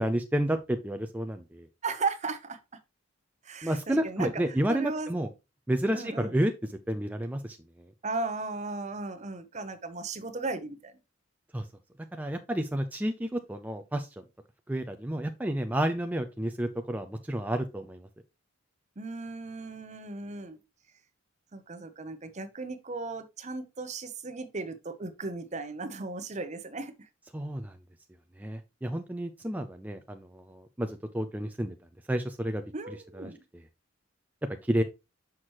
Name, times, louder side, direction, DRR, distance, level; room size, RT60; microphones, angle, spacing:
voice 1, 0.0-1.7 3.6-5.3 5.7-6.5 6.9-7.6 11.5-11.6 12.1-14.1 14.7-18.0 27.3-27.7 28.4-31.7 32.1-32.6 33.1-33.3 34.7-34.8, right 1 dB, 10° right, 0.4 m, -30 dB
voice 2, 1.8-2.6 3.4-5.1 5.9-6.3 8.0-11.0 19.0-20.6 21.5-27.1 32.7-33.4, right 3 dB, 35° right, 0.8 m, -36 dB
6.3 x 5.8 x 3.0 m
head